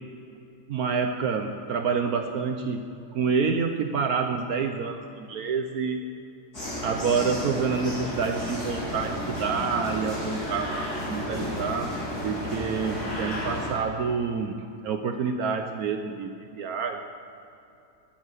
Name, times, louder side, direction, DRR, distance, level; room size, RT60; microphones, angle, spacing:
voice 1, 0.7-6.0 6.8-17.0, right 5 dB, 65° right, 6 dB, 1.1 m, -28 dB
sound 1, 6.5-13.7, left 1 dB, 65° left, 4.8 m, -32 dB
14.5 x 10.5 x 6.4 m, 2.7 s
omnidirectional pair, 1.8 m